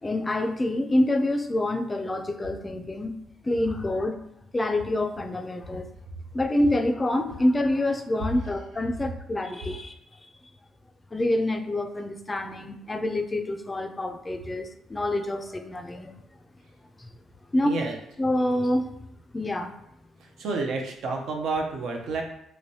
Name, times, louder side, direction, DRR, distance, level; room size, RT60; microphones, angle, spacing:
voice 1, 0.0-3.2 3.4-4.2 4.5-5.9 6.3-10.0 11.1-16.1 17.0-17.1 17.5-17.8 18.2-18.9 19.3-19.7, left 1 dB, 20° left, 6 dB, 0.3 m, -26 dB
voice 2, 17.6-18.0 20.2-22.2, right 3 dB, 75° right, 2 dB, 0.6 m, -30 dB
3.2 x 3.0 x 2.7 m, 0.78 s
cardioid pair, 90°, 0 cm